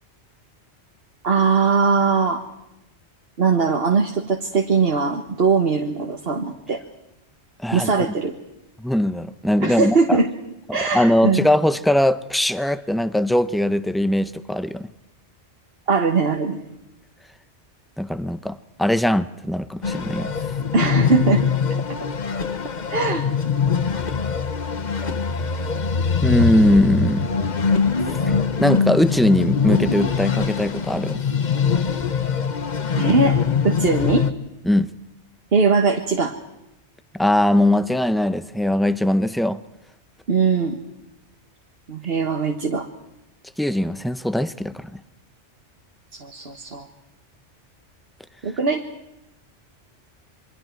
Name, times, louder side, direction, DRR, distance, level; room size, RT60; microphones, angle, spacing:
voice 1, 1.2-2.4 3.4-6.8 7.7-8.3 9.6-10.3 10.7-11.5 15.9-16.6 20.7-21.5 22.9-23.3 33.0-33.4 33.6-34.3 35.5-36.3 40.3-40.8 41.9-42.9 46.1-46.9 48.4-48.8, right 4 dB, 60° right, 3 dB, 1.7 m, -20 dB
voice 2, 8.8-10.2 10.7-14.9 18.0-20.3 26.2-27.3 28.3-28.4 28.6-31.2 34.7-34.9 37.1-39.6 43.6-45.0, left 1 dB, ahead, 13 dB, 0.6 m, -20 dB
sound 1, 19.8-34.3, left 6 dB, 40° left, 1.0 m, -23 dB
28.5 x 23.0 x 4.6 m, 0.92 s
omnidirectional pair, 1.2 m